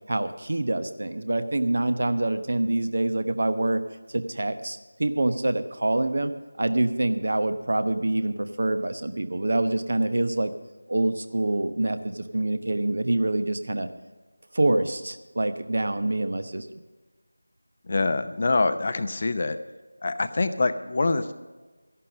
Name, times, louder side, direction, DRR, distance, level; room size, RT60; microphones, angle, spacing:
voice 1, 0.1-3.8 4.1-10.5 10.9-13.9 14.5-16.7, right 2 dB, 50° right, 10 dB, 1.0 m, -26 dB
voice 2, 17.9-19.6 20.0-21.3, left 3 dB, 35° left, 11 dB, 0.7 m, -25 dB
14.0 x 11.5 x 5.3 m, 1.3 s
figure-of-eight pair, 165°, 0 cm